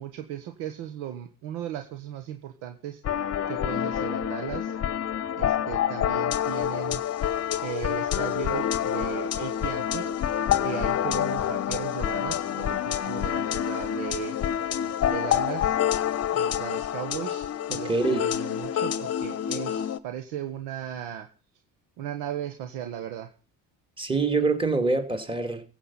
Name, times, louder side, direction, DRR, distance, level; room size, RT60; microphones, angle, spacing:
voice 1, 0.0-3.0 3.5-4.8 5.3-7.0 7.6-10.1 10.6-14.4 15.0-15.8 16.3-21.3 22.0-23.3, right 10 dB, 85° right, 1.5 m, -36 dB
sound 1, 3.0-20.0, left 10 dB, 40° left, 0.9 m, -27 dB
voice 2, 17.9-18.2 24.0-25.6, right 3 dB, 15° right, 2.5 m, -25 dB
15.0 x 8.4 x 5.6 m
cardioid pair, 105°, 39 cm